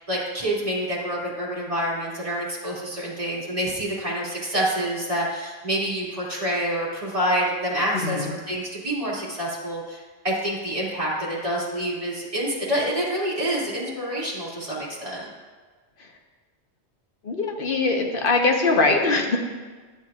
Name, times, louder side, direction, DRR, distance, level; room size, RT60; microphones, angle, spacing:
voice 1, 0.1-10.0 10.2-15.3, equal, 35° right, -7 dB, 2.4 m, -27 dB
voice 2, 17.2-19.4, left 3 dB, 60° left, 2 dB, 1.2 m, -22 dB
11.5 x 7.9 x 2.4 m, 1.4 s
omnidirectional pair, 1.1 m